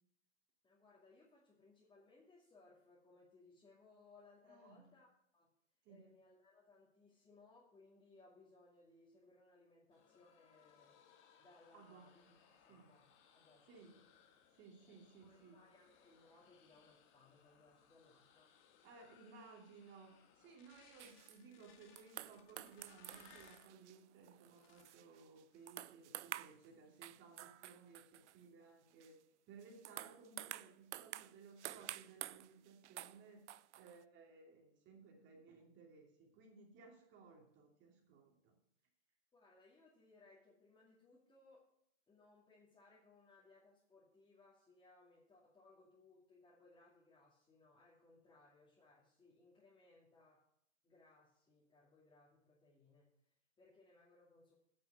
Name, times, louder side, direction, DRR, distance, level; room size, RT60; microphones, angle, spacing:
voice 1, 0.6-5.5 5.9-11.0 11.4-12.2 12.6-13.1 13.3-13.7 13.9-14.0 14.8-15.0 15.2-18.5 39.3-41.7 42.1-50.4 50.8-54.5, left 3 dB, 15° left, -6 dB, 2.5 m, -66 dB
voice 2, 4.5-4.9 5.8-6.1 11.7-12.3 12.7-12.9 13.6-14.0 14.5-15.6 18.8-38.6, right 4 dB, 35° right, 1 dB, 2.7 m, -60 dB
sound 1, 9.9-23.7 24.4-25.1 25.5-25.8 26.2-26.9, left 7 dB, 35° left, 1.7 m, -68 dB
sound 2, 21.0-21.4 22.0-25.4 25.7-26.7 27.0-28.4 29.0-29.1 29.6-33.2 33.5-34.0, right 14 dB, 75° right, 0.5 m, -50 dB
9.6 x 5.8 x 8.3 m, 0.71 s
hypercardioid pair, 120°, 35 cm